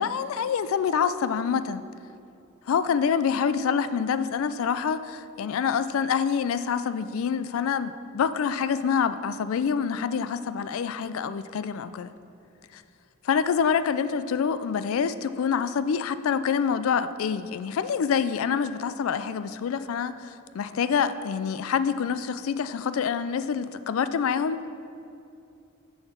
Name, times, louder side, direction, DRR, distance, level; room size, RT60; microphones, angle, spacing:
voice 1, 0.0-1.8 2.7-12.1 12.7-12.8 13.2-24.8, left 6 dB, 70° left, 14 dB, 0.3 m, -26 dB
6.5 x 6.4 x 5.9 m, 2.6 s
head